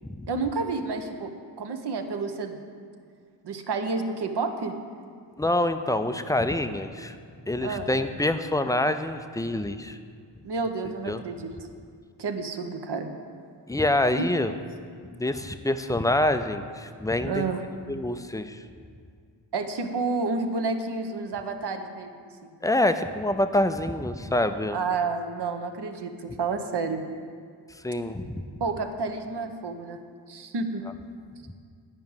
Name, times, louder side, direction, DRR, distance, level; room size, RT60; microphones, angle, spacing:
voice 1, 0.3-1.3 1.6-2.6 3.4-4.8 7.6-7.9 10.4-11.5 12.2-13.1 14.2-14.3 17.2-17.6 19.5-22.1 22.4-22.5 24.7-27.0 28.6-30.0 30.3-30.8, right 4 dB, 60° right, 6 dB, 0.9 m, -30 dB
voice 2, 5.4-7.2 7.4-10.0 11.0-11.2 13.7-14.5 15.1-17.4 17.9-18.6 22.6-24.8 27.8-28.4, left 1 dB, 10° left, 9 dB, 0.4 m, -26 dB
9.7 x 4.7 x 7.2 m, 2.1 s
cardioid pair, 55°, 45 cm